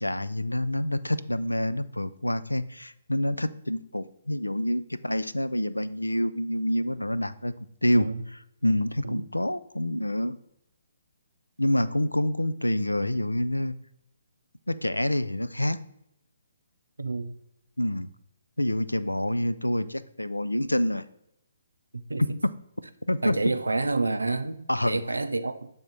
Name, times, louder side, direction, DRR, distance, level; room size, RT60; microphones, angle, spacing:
voice 1, 0.0-7.5 7.8-8.1 8.6-10.4 11.6-13.7 14.7-15.8 17.8-18.1 18.6-21.0 22.2-22.5 23.1-23.4 24.7-25.0, left 1 dB, 90° left, 0.3 m, -27 dB
voice 2, 7.9-8.2 9.0-9.3 17.0-17.3 21.9-22.2 23.2-25.7, right 3 dB, 80° right, 0.5 m, -29 dB
7.1 x 3.5 x 3.9 m
figure-of-eight pair, 135°, 0 cm